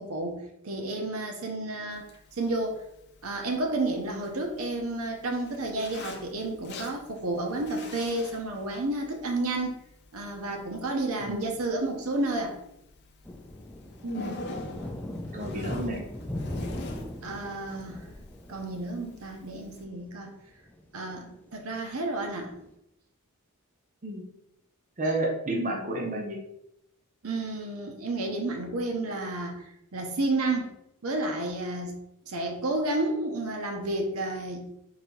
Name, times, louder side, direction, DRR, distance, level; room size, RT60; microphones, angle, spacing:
voice 1, 0.0-2.0 2.3-2.8 3.2-9.7 10.1-12.5 17.2-18.0 18.5-20.3 20.9-22.6 27.2-30.7 31.0-31.9 32.3-34.6, right 2 dB, 70° right, 2 dB, 0.7 m, -31 dB
Zipper (clothing), 1.9-19.8, left 2 dB, 50° left, 0.6 m, -47 dB
sound 1, 13.3-19.5 19.7-19.9 20.5-20.8 21.3-21.4 22.5-22.6, left 1 dB, 10° left, 0.4 m, -38 dB
voice 2, 14.0-14.4 15.3-16.0 24.0-24.2 25.0-26.4, right 1 dB, 35° right, 1 dB, 0.7 m, -31 dB
3.9 x 2.8 x 4.5 m, 0.80 s
head